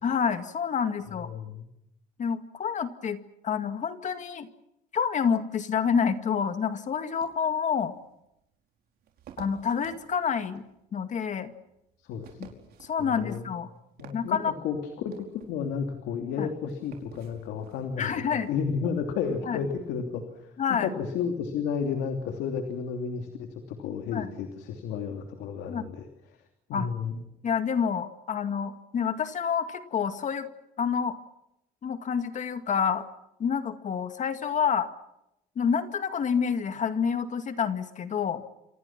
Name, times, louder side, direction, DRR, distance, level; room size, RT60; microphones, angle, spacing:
voice 1, 0.0-1.3 2.2-4.5 4.9-7.9 9.4-10.6 10.9-11.5 12.4-12.5 12.8-13.7 14.1-14.5 16.4-16.5 18.0-18.5 19.5-19.6 20.6-20.9 24.1-24.3 25.7-25.8 26.7-26.9 27.4-30.5 30.8-31.2 31.8-33.1 33.4-34.9 35.6-38.4, left 7 dB, 45° left, 8 dB, 2.1 m, -28 dB
voice 2, 1.2-1.7 12.0-12.4 13.0-13.4 14.0-14.4 14.6-15.1 15.5-26.1 26.7-27.2, left 6 dB, 85° left, 5 dB, 3.0 m, -32 dB
sound 1, 7.2-18.7, right 8 dB, 65° right, 4.9 m, -53 dB
29.5 x 26.5 x 6.1 m, 0.83 s
cardioid pair, 110°, 17 cm